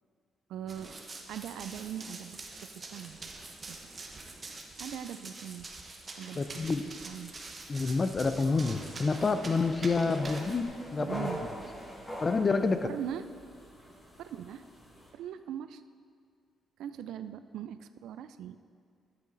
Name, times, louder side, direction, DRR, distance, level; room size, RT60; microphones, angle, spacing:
voice 1, 0.5-0.9 1.3-3.3 3.7-3.8 4.8-5.7 6.2-6.6 7.1-7.3 11.0-11.4 12.8-13.2 14.2-14.6 15.1-15.8 16.8-18.6, right 10 dB, 80° right, 12 dB, 0.3 m, -40 dB
Run, 0.7-10.6, right 3 dB, 35° right, 1.0 m, -45 dB
voice 2, 6.4-6.8 7.7-11.3 12.2-12.9, left 4 dB, 35° left, 10 dB, 0.4 m, -28 dB
sound 1, 8.4-15.1, equal, 15° left, 1.6 m, -44 dB
8.8 x 7.7 x 3.9 m, 2.2 s
cardioid pair, 90°, 0 cm